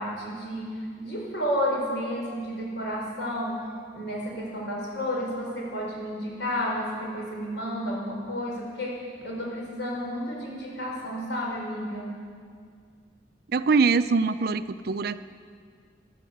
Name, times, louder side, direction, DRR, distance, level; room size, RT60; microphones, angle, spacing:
voice 1, 0.0-3.7 3.9-12.3, equal, 80° left, -2 dB, 4.4 m, -31 dB
voice 2, 13.5-15.2, right 4 dB, 55° right, 13 dB, 0.5 m, -23 dB
13.0 x 11.5 x 7.9 m, 2.1 s
head